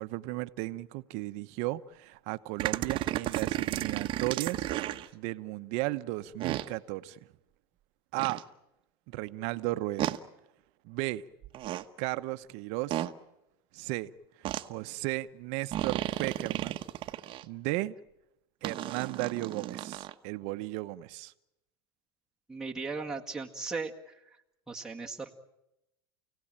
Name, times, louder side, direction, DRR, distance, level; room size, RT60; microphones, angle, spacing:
voice 1, 0.0-4.7 5.1-7.2 8.1-8.4 9.1-10.1 10.8-11.2 12.0-13.1 13.7-14.1 14.6-16.8 17.4-17.9 18.6-21.3, right 19 dB, 60° right, 1.0 m, -35 dB
sound 1, 2.6-5.1 6.4-6.7 8.2-8.4 10.0-10.2 11.4-11.8 12.9-13.1 14.4-14.6 15.7-17.4 18.6-20.1, right 13 dB, 40° right, 1.2 m, -33 dB
voice 2, 22.5-24.2 24.7-25.4, right 4 dB, 5° right, 1.9 m, -37 dB
29.0 x 17.5 x 8.9 m
supercardioid pair, 115°, 13 cm